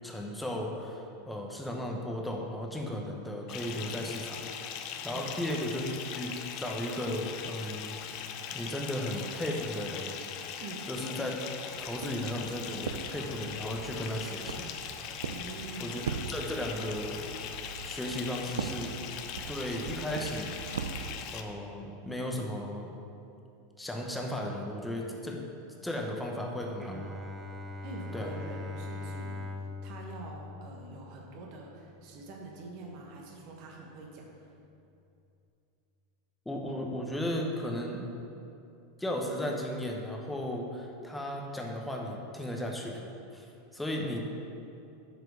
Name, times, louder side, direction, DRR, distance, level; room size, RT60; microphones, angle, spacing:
voice 1, 0.0-4.4 5.0-6.3 6.6-8.0 8.5-10.1 10.9-11.4 11.8-14.7 15.8-16.0 16.3-17.2 17.8-19.0 19.5-20.6 21.3-22.9 23.8-25.4 25.8-27.0 28.1-28.3 36.4-38.1 39.0-43.0 43.3-43.5 43.7-44.3, left 1 dB, 5° left, 0 dB, 1.1 m, -35 dB
Bathtub (filling or washing) / Fill (with liquid), 3.5-21.4, left 8 dB, 50° left, 0.6 m, -40 dB
voice 2, 5.1-5.8 10.6-10.9 15.3-16.0 27.8-34.5 43.8-44.3, right 3 dB, 55° right, 0 dB, 1.3 m, -45 dB
Walk footsteps, 11.8-21.1, right 6 dB, 80° right, 0.4 m, -41 dB
Bowed string instrument, 26.8-32.5, left 2 dB, 15° right, 0.6 m, -42 dB
8.0 x 5.0 x 4.9 m, 2.7 s
hypercardioid pair, 90°, 0 cm